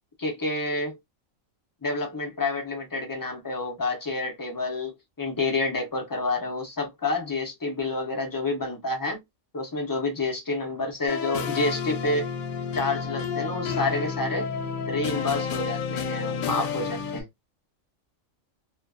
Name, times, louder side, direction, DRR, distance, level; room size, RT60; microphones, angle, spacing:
voice 1, 0.2-1.0 1.8-9.2 9.5-12.3 12.7-14.5 14.9-17.3, left 3 dB, 35° left, 0.3 m, -29 dB
sound 1, 11.1-17.2, left 6 dB, 85° left, 1.0 m, -30 dB
2.4 x 2.2 x 2.2 m
omnidirectional pair, 1.4 m